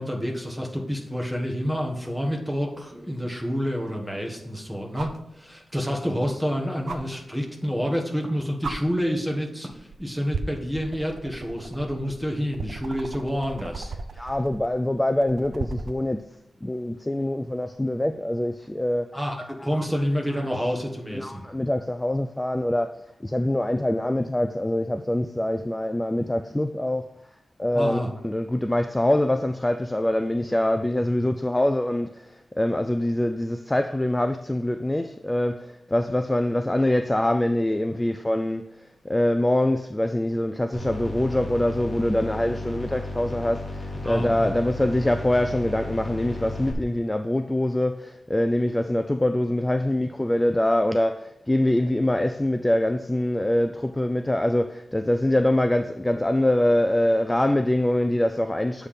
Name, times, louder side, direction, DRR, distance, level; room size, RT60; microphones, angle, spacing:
voice 1, 0.0-13.9 19.1-21.4 27.7-28.1 44.0-44.5, equal, 5° right, 1.4 m, -28 dB
sound 1, 2.7-2.8 4.9-5.3 6.9-7.0 8.1-8.2 8.6-8.8 9.7-10.0 10.3-16.0 17.6-17.7, right 4 dB, 80° right, 0.5 m, -35 dB
voice 2, 13.9-16.2 16.6-19.1 19.5-20.0 20.3-20.5 21.1-22.9 23.2-27.0 27.6-58.9, left 1 dB, 15° left, 0.3 m, -24 dB
sound 2, 40.7-46.7, left 2 dB, 30° left, 1.8 m, -34 dB
8.2 x 3.4 x 5.6 m
wide cardioid pair, 110°, 0 cm